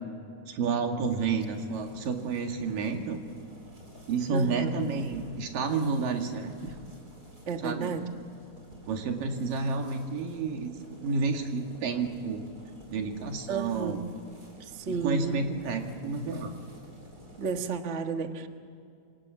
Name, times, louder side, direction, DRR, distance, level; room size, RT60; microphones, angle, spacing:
voice 1, 0.5-3.2 4.1-6.8 7.6-7.9 8.9-10.7 11.0-12.5 12.9-14.0 14.9-16.5, right 4 dB, 80° right, 4 dB, 3.8 m, -30 dB
sound 1, 1.0-17.8, equal, 25° right, 4.7 m, -51 dB
voice 2, 4.3-4.7 7.5-8.0 13.5-14.0 14.7-15.4 17.4-18.5, right 5 dB, 65° right, 6 dB, 0.7 m, -32 dB
27.5 x 25.5 x 7.5 m, 2.4 s
omnidirectional pair, 3.8 m